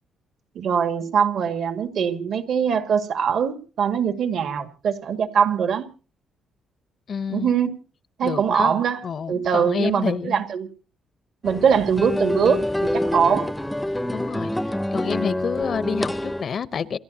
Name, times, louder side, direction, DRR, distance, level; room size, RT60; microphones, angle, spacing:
voice 1, 0.6-5.9 7.3-7.7 8.2-9.0 9.3-10.7 11.4-13.5, right 7 dB, 65° right, 2.1 m, -22 dB
voice 2, 7.1-7.5 8.2-10.4 14.1-14.5 14.9-17.0, left 7 dB, 50° left, 0.8 m, -28 dB
sound 1, 11.4-16.4, left 1 dB, 5° left, 0.7 m, -26 dB
28.0 x 12.5 x 2.9 m
cardioid pair, 90°, 0 cm